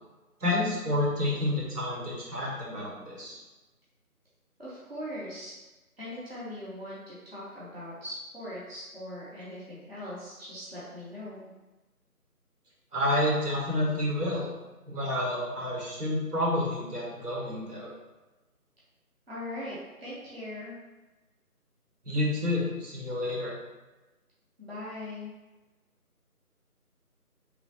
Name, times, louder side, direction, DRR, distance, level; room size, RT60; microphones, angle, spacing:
voice 1, 0.4-3.4 12.9-14.5 14.9-17.9 22.0-23.6, left 1 dB, 85° right, -5 dB, 1.4 m, -29 dB
voice 2, 4.6-5.5 6.0-11.5 19.3-20.7 24.6-25.3, left 1 dB, 40° right, -9 dB, 0.6 m, -40 dB
3.1 x 2.1 x 2.7 m, 1.1 s
figure-of-eight pair, 175°, 46 cm